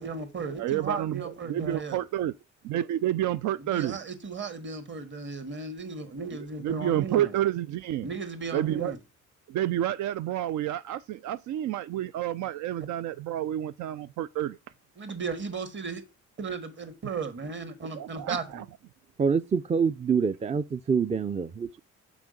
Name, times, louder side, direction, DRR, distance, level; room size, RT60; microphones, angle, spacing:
voice 1, 0.0-2.0 3.6-7.3 8.0-9.0 15.0-16.0 16.4-18.6, right 4 dB, 40° right, 1.6 m, -35 dB
voice 2, 0.6-2.3 2.6-4.0 6.6-8.1 8.5-8.9 9.5-14.6 17.9-18.6, right 12 dB, 75° right, 0.5 m, -29 dB
voice 3, 19.2-21.8, right 6 dB, 25° right, 0.4 m, -26 dB
6.1 x 4.9 x 5.2 m
cardioid pair, 90°, 30 cm